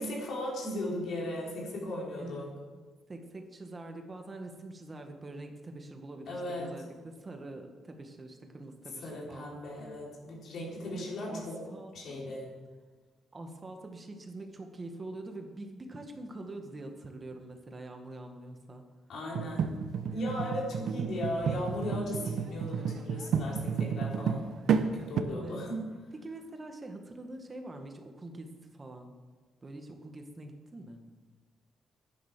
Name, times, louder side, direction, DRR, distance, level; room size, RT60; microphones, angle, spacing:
voice 1, 0.0-2.5 6.3-6.7 9.0-11.6 11.9-12.5 19.1-19.8 20.1-24.5 24.9-25.9, left 1 dB, 65° left, -3 dB, 4.9 m, -37 dB
voice 2, 2.2-2.5 3.1-9.6 10.9-12.2 13.3-18.8 22.2-22.3 25.3-25.6 26.1-29.1 29.6-31.1, right 2 dB, 30° right, 4 dB, 1.7 m, -45 dB
sound 1, 19.3-25.2, right 6 dB, 70° right, 0.9 m, -31 dB
11.0 x 10.0 x 7.5 m, 1.4 s
cardioid pair, 90°, 0 cm